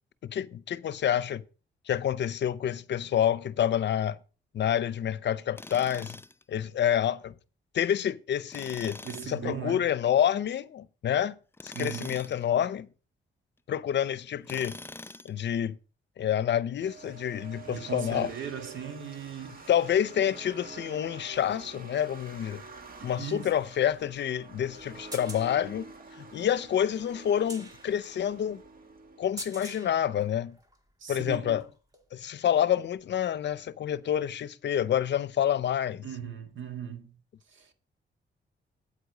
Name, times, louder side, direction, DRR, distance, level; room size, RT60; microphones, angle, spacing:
voice 1, 0.2-1.4 1.9-4.2 4.5-6.2 6.5-7.3 7.7-9.0 9.3-12.9 13.7-14.8 15.2-15.8 16.2-18.3 19.7-22.6 23.0-25.9 26.2-28.6 29.2-30.6 31.1-31.6 32.1-36.0, left 10 dB, 65° left, 0.6 m, -28 dB
Tools, 5.6-6.4 8.5-9.4 11.5-12.4 14.4-15.4, left 2 dB, 10° left, 0.4 m, -43 dB
voice 2, 9.0-9.9 11.7-12.2 17.7-19.7 23.0-23.5 31.0-31.6 36.0-37.1 37.5-37.7, right 7 dB, 75° right, 1.7 m, -38 dB
sound 1, 16.8-29.9, right 4 dB, 45° right, 1.7 m, -48 dB
sound 2, 22.8-30.9 31.4-32.2 33.5-33.6, right 1 dB, 20° right, 1.6 m, -47 dB
8.7 x 8.1 x 4.0 m
cardioid pair, 85°, 20 cm